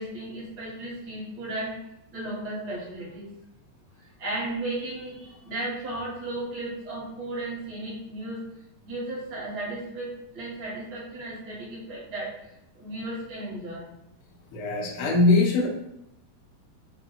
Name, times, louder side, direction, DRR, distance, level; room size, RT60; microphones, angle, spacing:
voice 1, 0.0-1.7 2.1-3.3 4.2-8.4 8.8-12.3 12.8-13.9, right 2 dB, 65° right, -7 dB, 1.0 m, -35 dB
voice 2, 14.5-15.7, left 3 dB, 90° left, -1 dB, 1.4 m, -21 dB
5.8 x 2.2 x 3.8 m, 0.84 s
omnidirectional pair, 4.1 m